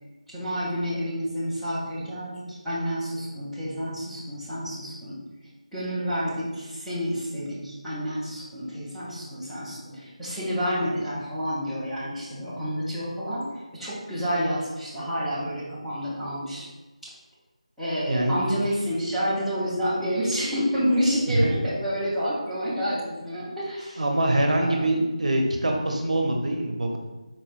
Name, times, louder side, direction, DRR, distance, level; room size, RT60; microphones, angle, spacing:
voice 1, 0.3-5.2 5.7-16.7 17.8-24.0 24.6-24.9, equal, ahead, -14 dB, 0.5 m, -29 dB
voice 2, 18.1-18.4 21.3-21.5 24.0-27.0, right 1 dB, 70° right, 2 dB, 0.7 m, -24 dB
4.4 x 3.0 x 2.4 m, 1.1 s
figure-of-eight pair, 170°, 4 cm